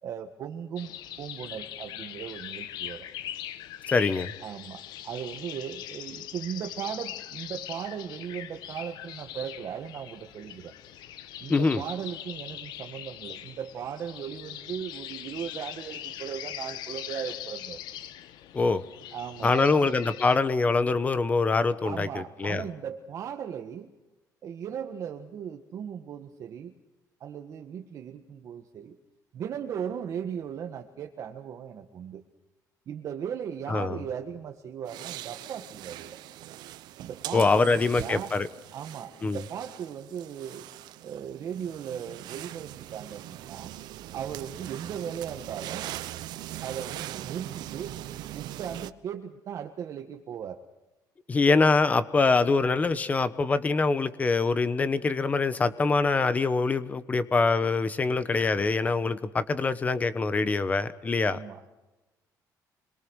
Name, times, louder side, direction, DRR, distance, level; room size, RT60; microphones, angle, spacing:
voice 1, 0.0-3.1 4.4-10.7 11.4-17.8 19.1-20.0 21.8-23.9 24.4-26.7 27.2-29.0 29.3-32.2 32.9-36.2 37.0-38.3 38.7-40.7 41.0-43.7 44.1-45.8 46.6-47.9 48.3-50.6 61.3-61.8, right 8 dB, 50° right, 4 dB, 1.6 m, -37 dB
sound 1, 0.8-20.4, left 11 dB, 80° left, 1.3 m, -41 dB
voice 2, 3.9-4.3 11.5-11.8 18.5-18.8 19.4-22.6 33.7-34.0 37.3-38.5 39.2-39.4 51.3-61.4, left 4 dB, 20° left, 13 dB, 1.1 m, -24 dB
sound 2, 34.9-48.9, right 14 dB, 85° right, 0.9 m, -41 dB
26.5 x 22.5 x 6.5 m, 1.0 s
cardioid pair, 165°, 7 cm